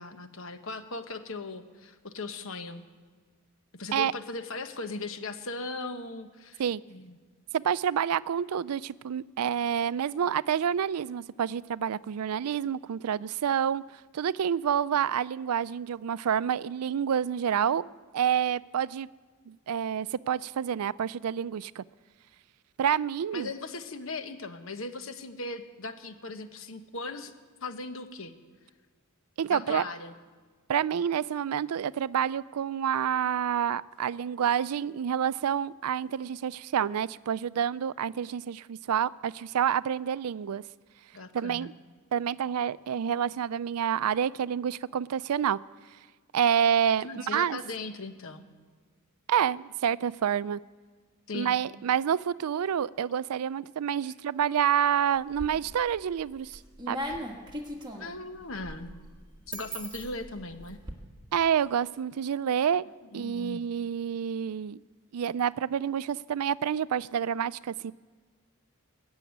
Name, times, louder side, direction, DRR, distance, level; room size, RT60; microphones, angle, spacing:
voice 1, 0.0-2.8 3.8-6.6 6.9-7.2 23.3-27.3 27.6-28.3 29.5-30.1 41.1-41.7 47.0-48.5 51.3-51.6 58.0-58.9 59.5-60.8 63.1-63.6, left 3 dB, 60° left, 8 dB, 1.2 m, -38 dB
voice 2, 7.5-13.8 14.1-17.8 18.1-19.1 19.5-21.8 22.8-23.5 29.4-29.8 30.7-40.6 41.3-41.7 42.1-45.6 46.3-47.6 49.3-50.6 51.3-56.6 56.9-57.1 61.3-62.8 63.1-64.8 65.1-67.9, right 8 dB, 85° right, 19 dB, 0.4 m, -28 dB
sound 1, 55.2-55.9 56.3-60.9, equal, 20° right, 1.6 m, -39 dB
21.0 x 7.1 x 9.3 m, 1.5 s
head